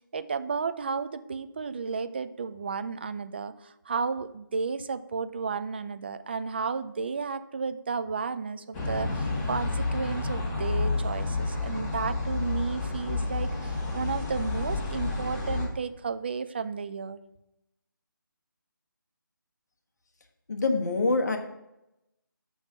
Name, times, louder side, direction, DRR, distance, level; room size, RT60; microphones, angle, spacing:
voice 1, 0.1-17.2, right 5 dB, 30° right, 12 dB, 0.3 m, -33 dB
sound 1, 8.7-15.7, left 3 dB, 15° left, 1.2 m, -30 dB
voice 2, 20.5-21.4, left 3 dB, 50° left, 4 dB, 1.3 m, -25 dB
6.1 x 5.6 x 6.5 m, 0.88 s
figure-of-eight pair, 155°, 11 cm